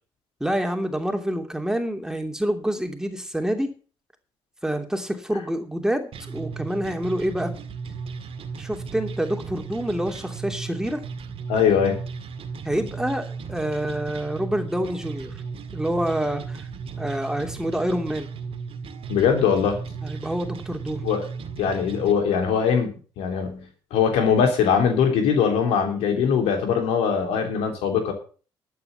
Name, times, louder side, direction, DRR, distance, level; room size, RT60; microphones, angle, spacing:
voice 1, 0.4-3.7 4.6-7.5 8.6-11.0 12.6-15.3 15.7-16.6 17.0-18.3 20.0-21.0, right 1 dB, 5° right, 5 dB, 3.0 m, -27 dB
sound 1, 6.1-22.1, right 5 dB, 65° right, 1.9 m, -35 dB
voice 2, 11.5-12.0 19.1-19.8 21.0-21.3 21.6-28.1, left 7 dB, 85° left, 4 dB, 3.5 m, -21 dB
11.5 x 8.3 x 7.2 m, 0.38 s
supercardioid pair, 65°, 10 cm